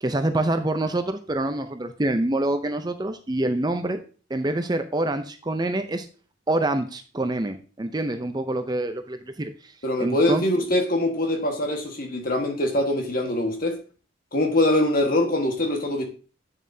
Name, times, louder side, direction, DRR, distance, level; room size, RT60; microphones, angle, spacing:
voice 1, 0.0-4.0 4.3-6.1 6.5-9.7 10.0-10.4, right 1 dB, 20° right, 0.5 m, -26 dB
voice 2, 9.8-13.8 14.3-16.0, left 1 dB, 45° left, 1.5 m, -23 dB
8.5 x 7.2 x 2.7 m
head